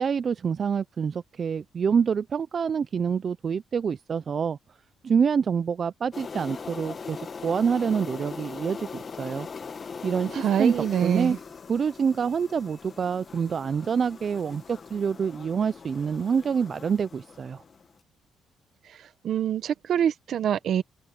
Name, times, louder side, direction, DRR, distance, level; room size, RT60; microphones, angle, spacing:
voice 1, 0.0-4.6 5.0-9.5 10.0-10.7 11.0-11.4 11.7-17.6, right 6 dB, 45° right, 0.5 m, -26 dB
sound 1, 6.1-17.9, left 5 dB, 40° left, 1.3 m, -41 dB
voice 2, 10.3-11.4 19.2-20.8, right 9 dB, 65° right, 1.2 m, -25 dB
open air
cardioid pair, 90°, 0 cm